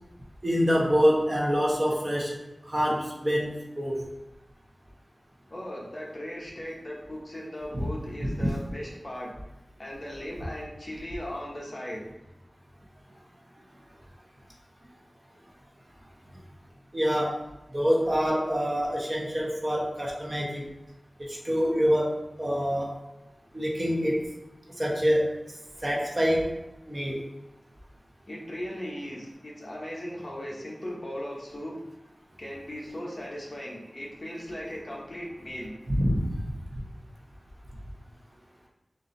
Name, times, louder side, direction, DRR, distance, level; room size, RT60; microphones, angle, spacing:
voice 1, 0.4-2.4 2.7-4.0 7.7-7.9 8.2-8.5 16.9-17.4 17.7-20.7 21.2-22.9 23.5-24.2 24.8-25.3 25.8-26.5 26.9-27.2 35.9-36.2, equal, 40° right, -3 dB, 1.0 m, -26 dB
voice 2, 5.5-9.3 9.8-12.1 28.3-31.8 32.4-35.7, equal, 45° left, -3 dB, 1.1 m, -38 dB
4.0 x 2.8 x 3.8 m, 0.97 s
wide cardioid pair, 60°, 0 cm